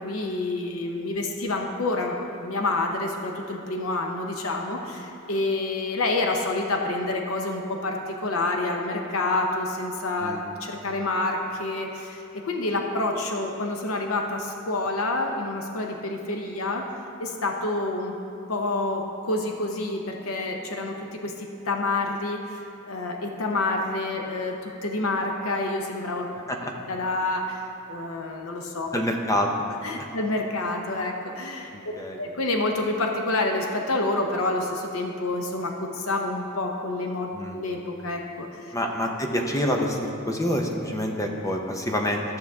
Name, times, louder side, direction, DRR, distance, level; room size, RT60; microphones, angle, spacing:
voice 1, 0.0-2.2 2.4-16.8 17.2-18.2 18.5-26.3 26.9-28.9 29.8-31.9 32.2-38.7, left 2 dB, 75° left, 2 dB, 0.8 m, -28 dB
voice 2, 28.9-29.5 31.7-32.2 37.3-37.6 38.7-42.4, left 1 dB, 15° left, 2 dB, 0.7 m, -27 dB
13.5 x 6.3 x 3.6 m, 2.9 s
head